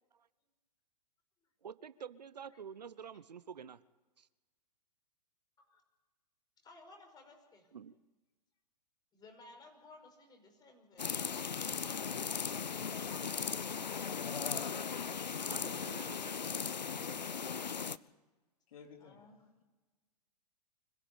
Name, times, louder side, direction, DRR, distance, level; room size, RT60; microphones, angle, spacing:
voice 1, 1.6-3.8 4.2-4.3 7.7-8.0 14.7-14.8 15.5-16.5, right 7 dB, 75° right, 16 dB, 0.9 m, -48 dB
voice 2, 6.6-7.7 9.1-11.1 12.7-14.2 16.8-17.8 19.0-19.4, left 3 dB, 20° left, 4 dB, 5.5 m, -57 dB
sound 1, 11.0-18.0, left 6 dB, 85° left, 0.7 m, -37 dB
voice 3, 13.8-14.4 18.7-19.2, left 6 dB, 55° left, 4 dB, 3.6 m, -55 dB
25.5 x 15.5 x 8.7 m, 1.2 s
figure-of-eight pair, 115°, 21 cm